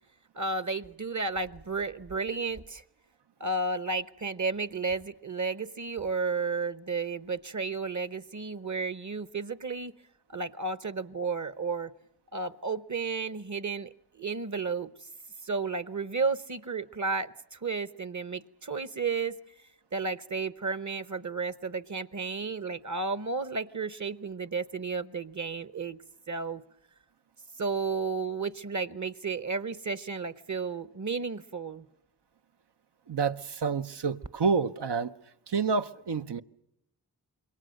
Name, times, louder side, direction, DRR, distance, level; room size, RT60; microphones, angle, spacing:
voice 1, 0.3-2.8 3.4-9.9 10.3-11.9 12.3-15.1 15.4-19.3 19.9-26.0 26.3-26.6 27.6-31.9, right 4 dB, 45° right, 0.9 m, -33 dB
voice 2, 33.1-35.1 35.5-36.4, right 5 dB, 90° right, 0.8 m, -28 dB
26.5 x 22.5 x 6.4 m
wide cardioid pair, 50°, 40 cm